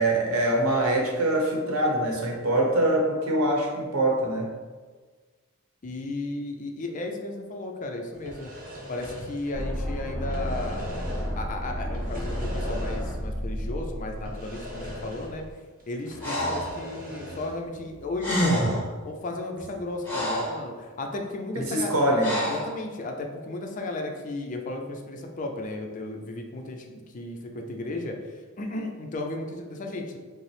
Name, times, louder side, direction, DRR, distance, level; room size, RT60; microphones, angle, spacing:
voice 1, 0.0-4.5 21.5-22.5, right 1 dB, 70° right, -1 dB, 0.8 m, -24 dB
voice 2, 5.8-8.5 8.9-10.9 11.4-15.4 15.9-18.8 19.0-21.9 22.5-28.2 28.6-30.2, left 2 dB, 35° left, 3 dB, 0.4 m, -34 dB
sound 1, 8.1-9.9 10.2-11.4 11.9-13.3 13.6-13.7 14.2-15.5 15.8-17.6, left 1 dB, 40° right, 0.9 m, -40 dB
sound 2, 9.5-15.5, equal, 15° right, 1.1 m, -32 dB
Breathing, 16.2-16.7 17.9-18.0 18.2-18.9 19.6-20.6 22.2-22.7, equal, 10° left, 1.1 m, -27 dB
5.1 x 2.0 x 3.2 m, 1.4 s
head